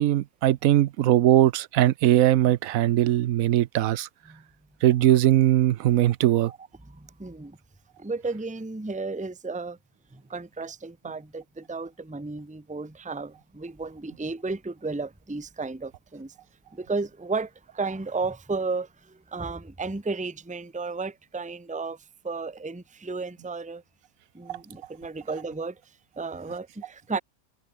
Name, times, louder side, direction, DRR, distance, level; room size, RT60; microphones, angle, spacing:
voice 1, 0.0-4.1 4.8-6.5 24.5-24.6, right 13 dB, 70° right, 0.9 m, -20 dB
voice 2, 6.9-7.6 8.0-9.8 10.1-16.3 16.7-23.8 24.3-25.8 26.2-27.2, right 3 dB, 5° right, 1.1 m, -33 dB
omnidirectional pair, 1.7 m